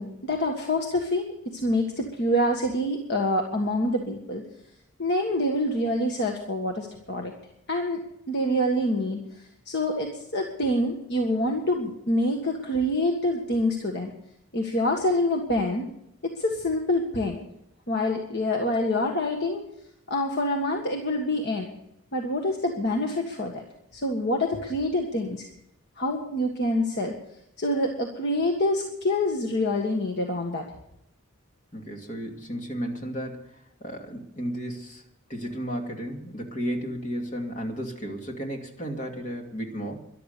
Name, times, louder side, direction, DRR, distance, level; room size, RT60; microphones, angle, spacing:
voice 1, 0.0-4.4 5.0-7.3 7.7-8.0 8.3-9.2 9.7-14.1 14.5-15.9 16.2-17.4 17.9-19.6 20.1-21.7 22.1-23.6 23.9-25.5 26.0-27.1 27.6-30.7, left 1 dB, 50° left, 2 dB, 1.7 m, -26 dB
voice 2, 31.7-35.0 35.3-40.0, equal, 35° left, 1 dB, 2.7 m, -33 dB
13.5 x 12.0 x 6.8 m, 0.77 s
head